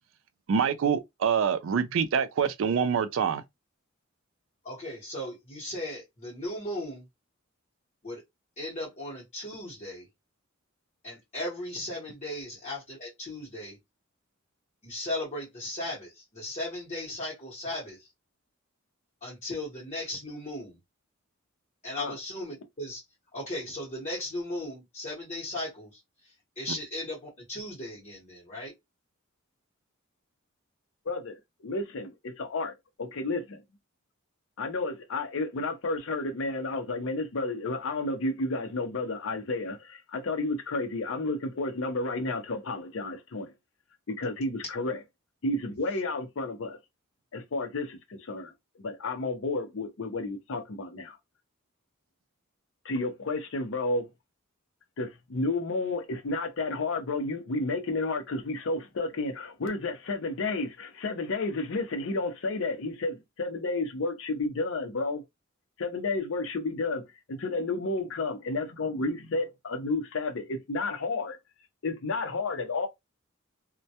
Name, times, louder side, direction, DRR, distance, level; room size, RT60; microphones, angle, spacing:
voice 1, 0.5-3.4, right 7 dB, 65° right, 0.4 m, -26 dB
voice 2, 4.6-7.0 8.0-8.2 8.6-10.1 11.0-13.8 14.8-18.1 19.2-20.8 21.8-23.0 23.3-28.7, left 1 dB, 35° left, 0.9 m, -37 dB
voice 3, 31.1-33.6 34.6-43.5 44.1-45.0 45.4-46.8 47.3-48.5 48.8-51.2 52.8-54.1 55.0-65.2 65.8-67.0 67.3-71.4 71.8-72.9, left 2 dB, 65° left, 0.6 m, -31 dB
2.2 x 2.1 x 2.7 m
head